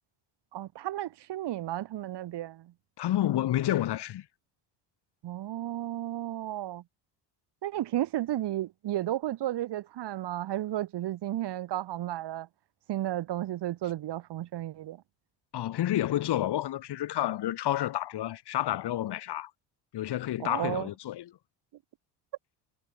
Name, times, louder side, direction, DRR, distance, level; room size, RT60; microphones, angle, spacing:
voice 1, 0.5-2.7 5.2-6.8 7.6-12.5 12.9-15.0 20.4-20.9, right 13 dB, 60° right, 5.7 m, -33 dB
voice 2, 3.0-4.2 15.5-19.5 19.9-21.3, left 13 dB, 60° left, 4.9 m, -29 dB
supercardioid pair, 70°, 45 cm